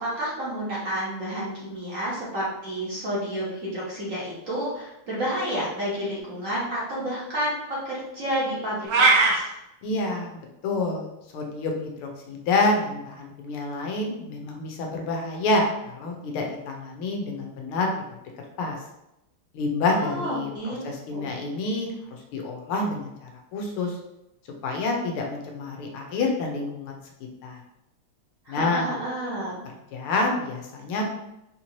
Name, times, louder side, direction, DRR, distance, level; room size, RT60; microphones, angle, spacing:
voice 1, 0.0-9.5 19.9-20.9 21.1-21.3 28.4-29.6, right 1 dB, 45° right, -7 dB, 1.2 m, -30 dB
sound 1, 8.9-9.4, right 3 dB, 65° right, 1.2 m, -17 dB
voice 2, 9.8-10.3 10.6-11.1 11.3-18.0 18.6-18.8 19.5-21.9 22.3-24.0 24.6-27.0 27.4-27.6 28.5-28.9 29.9-31.1, left 2 dB, 85° left, 1 dB, 1.6 m, -28 dB
4.5 x 3.0 x 2.8 m, 0.87 s
omnidirectional pair, 2.3 m